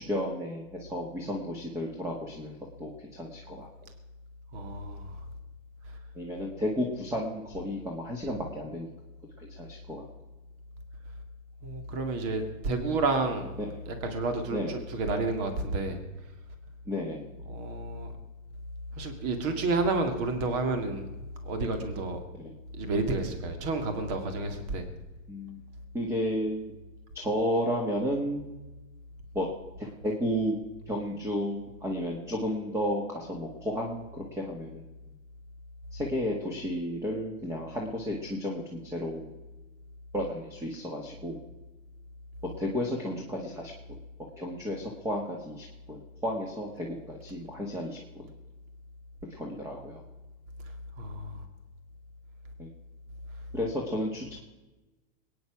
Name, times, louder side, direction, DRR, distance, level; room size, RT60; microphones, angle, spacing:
voice 1, 0.0-3.7 6.2-8.9 9.4-10.0 13.6-13.8 14.5-14.7 16.9-17.3 22.3-22.5 25.3-25.6 25.9-26.7 27.2-28.5 29.3-29.5 29.8-30.6 30.9-34.9 35.9-39.3 40.1-41.4 42.6-43.7 44.4-48.3 49.3-50.0 52.6-52.7 53.5-54.4, equal, 5° right, 0 dB, 1.8 m, -33 dB
voice 2, 4.5-5.1 11.6-13.5 13.9-16.0 17.5-18.1 19.0-21.1 21.4-22.2 22.8-24.8 51.0-51.4, right 3 dB, 40° right, 6 dB, 2.2 m, -30 dB
21.5 x 9.7 x 6.0 m, 1.1 s
supercardioid pair, 145°, 39 cm